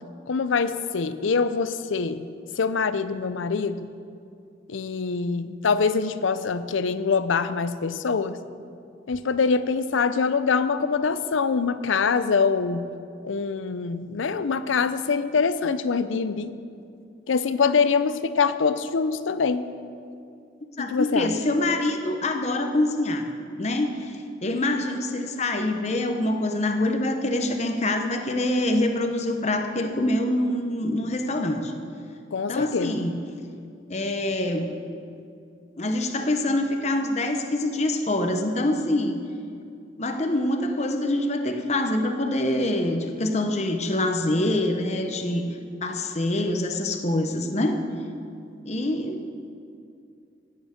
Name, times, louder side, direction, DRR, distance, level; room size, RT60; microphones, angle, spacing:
voice 1, 0.3-2.3 2.6-3.9 4.7-8.4 9.1-12.9 13.2-16.6 17.3-19.7 20.8-21.4 32.3-33.1, left 5 dB, 90° left, 13 dB, 0.6 m, -24 dB
voice 2, 20.8-23.3 23.6-31.7 32.5-33.2 33.9-34.7 35.8-39.2 40.0-45.5 45.8-47.8 48.6-49.2, left 1 dB, 35° left, 5 dB, 0.9 m, -25 dB
16.0 x 8.8 x 5.1 m, 2.5 s
head